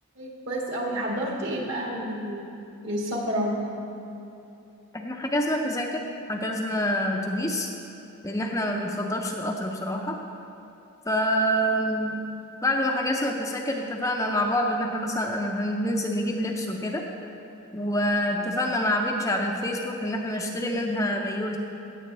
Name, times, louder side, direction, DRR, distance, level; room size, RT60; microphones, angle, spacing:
voice 1, 0.2-2.4 2.8-3.8, equal, 55° right, -2 dB, 1.9 m, -29 dB
voice 2, 4.9-6.0 6.3-7.7 8.2-10.2 11.1-12.3 12.6-17.0 17.7-21.6, equal, 15° left, 1 dB, 0.5 m, -27 dB
17.0 x 7.4 x 3.4 m, 2.8 s
head